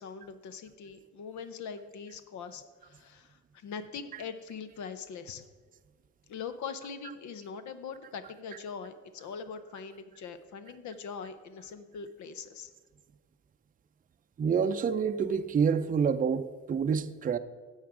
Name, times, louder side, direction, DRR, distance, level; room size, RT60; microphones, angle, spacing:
voice 1, 0.0-5.5 6.3-12.7, left 6 dB, 70° left, 0.7 m, -42 dB
voice 2, 14.4-17.4, right 6 dB, 30° right, 0.5 m, -27 dB
9.5 x 7.4 x 4.9 m
cardioid pair, 90°, 30 cm